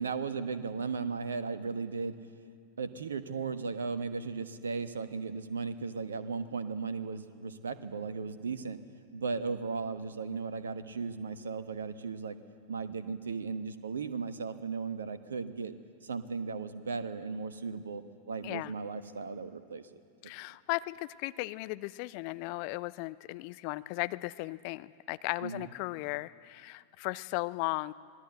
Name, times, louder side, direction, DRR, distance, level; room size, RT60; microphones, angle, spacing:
voice 1, 0.0-2.2 2.8-8.8 9.1-12.4 12.7-15.7 16.0-18.0 18.3-19.9 25.4-25.7, right 5 dB, 70° right, 10 dB, 1.2 m, -36 dB
voice 2, 20.2-27.9, left 21 dB, 45° left, 15 dB, 0.6 m, -36 dB
26.0 x 19.5 x 7.8 m, 2.3 s
figure-of-eight pair, 90°, 0 cm